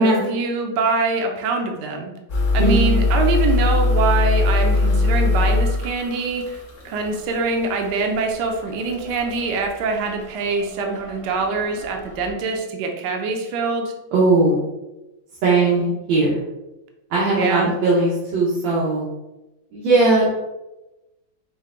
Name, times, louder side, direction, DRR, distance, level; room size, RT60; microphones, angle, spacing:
voice 1, 0.0-2.1 2.5-6.6 6.8-13.9 17.3-17.7, right 3 dB, 70° right, 3 dB, 1.2 m, -24 dB
sound 1, 2.3-12.3, left 2 dB, 45° left, 1.2 m, -22 dB
voice 2, 2.6-2.9 14.1-14.6 15.4-16.4 17.1-19.1 19.7-20.3, right 3 dB, 85° right, -6 dB, 1.7 m, -18 dB
5.5 x 2.1 x 3.6 m, 0.99 s
omnidirectional pair, 2.1 m